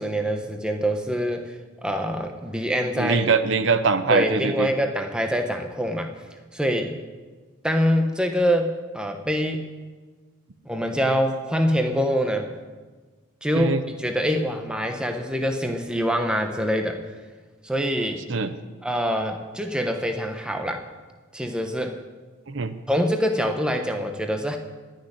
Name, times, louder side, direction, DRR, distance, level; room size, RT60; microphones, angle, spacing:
voice 1, 0.0-3.3 4.1-6.1 6.5-7.0 7.6-9.7 10.6-12.5 13.4-17.0 17.6-18.2 18.8-20.8 21.3-22.0 22.9-24.6, equal, 5° right, 4 dB, 1.1 m, -25 dB
voice 2, 3.0-4.7 13.5-13.8 18.3-18.5 22.5-22.8, right 4 dB, 60° right, 11 dB, 0.8 m, -22 dB
19.0 x 6.7 x 9.9 m, 1.4 s
head